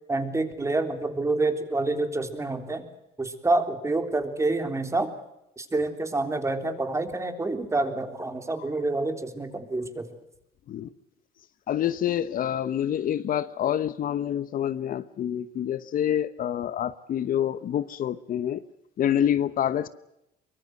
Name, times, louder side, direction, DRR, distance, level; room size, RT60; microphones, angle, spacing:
voice 1, 0.1-2.8 3.2-5.1 5.6-10.1, right 2 dB, 15° right, 7 dB, 3.5 m, -27 dB
voice 2, 11.7-18.6 19.0-19.9, left 10 dB, 55° left, 14 dB, 1.1 m, -27 dB
24.0 x 22.5 x 7.8 m, 0.86 s
cardioid pair, 110°, 17 cm